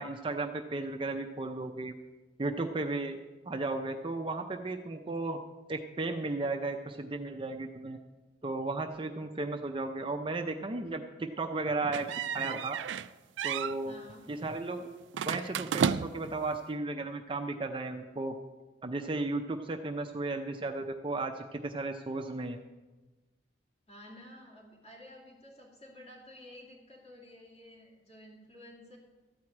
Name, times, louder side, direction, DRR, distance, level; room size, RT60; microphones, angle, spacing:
voice 1, 0.0-1.9 2.4-3.2 3.5-5.4 5.7-8.0 8.4-12.8 13.4-13.9 14.3-14.9 15.3-18.3 18.8-22.6, right 2 dB, 30° right, 5 dB, 0.5 m, -35 dB
sound 1, 11.9-13.1 13.4-13.8 15.1-16.3, right 7 dB, 85° right, 0.4 m, -32 dB
voice 2, 13.9-14.3 23.9-29.0, left 1 dB, 35° left, -3 dB, 2.5 m, -52 dB
13.0 x 4.7 x 8.5 m, 1.2 s
head